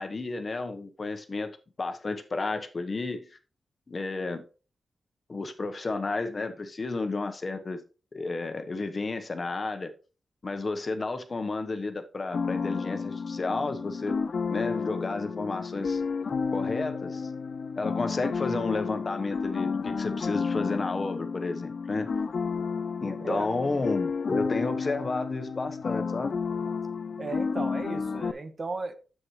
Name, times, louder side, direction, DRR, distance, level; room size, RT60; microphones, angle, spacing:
voice 1, 0.0-3.4 3.9-4.4 5.3-7.8 8.1-9.9 10.4-14.2 14.5-16.0 16.5-17.3 17.8-22.1 23.0-26.3, left 3 dB, 40° left, 1.1 m, -32 dB
sound 1, 12.3-28.3, left 5 dB, 60° left, 0.6 m, -31 dB
voice 2, 27.2-28.9, right 3 dB, 45° right, 1.3 m, -35 dB
9.6 x 7.8 x 3.2 m
wide cardioid pair, 115°, 0 cm